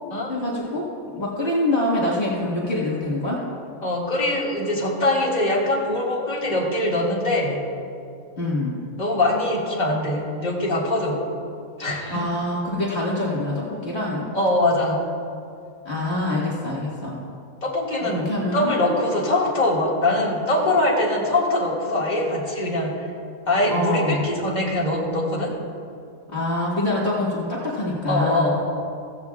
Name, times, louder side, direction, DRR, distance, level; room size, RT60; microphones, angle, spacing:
voice 1, 0.3-3.4 8.4-8.7 12.1-14.3 15.9-17.2 18.0-18.7 23.7-24.3 26.3-28.5, left 1 dB, 50° left, -6 dB, 1.9 m, -25 dB
voice 2, 3.8-7.6 9.0-11.2 11.8-12.2 14.3-15.1 17.6-22.9 23.5-25.5 28.1-28.8, left 1 dB, 30° left, -5 dB, 2.1 m, -22 dB
16.0 x 14.5 x 2.3 m, 2.4 s
omnidirectional pair, 1.5 m